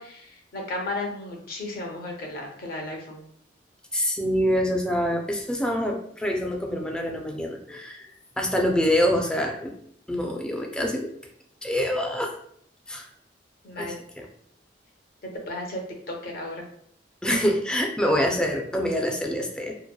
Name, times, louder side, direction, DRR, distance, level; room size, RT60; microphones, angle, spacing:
voice 1, 0.0-3.2 13.6-13.9 15.2-15.8 16.1-16.6, left 2 dB, 55° left, 1 dB, 0.6 m, -34 dB
voice 2, 3.9-9.7 10.1-11.1 11.6-12.3 12.9-13.1 13.8-14.3 17.2-19.8, equal, 5° left, 1 dB, 0.3 m, -26 dB
2.8 x 2.1 x 2.2 m, 0.66 s
head